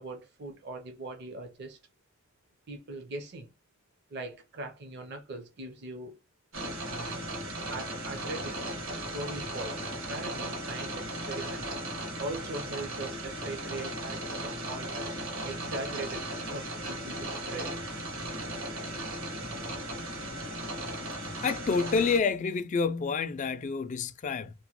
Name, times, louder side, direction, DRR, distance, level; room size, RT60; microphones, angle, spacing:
voice 1, 0.0-1.8 2.7-3.5 4.1-6.2 6.8-7.2 7.7-8.8 9.1-11.7 12.2-15.0 15.4-17.8, right 2 dB, 55° right, 0.6 m, -40 dB
sound 1, 6.5-22.2, right 1 dB, 85° right, 1.4 m, -36 dB
voice 2, 21.4-24.5, left 5 dB, 35° left, 0.3 m, -28 dB
2.9 x 2.1 x 2.9 m
head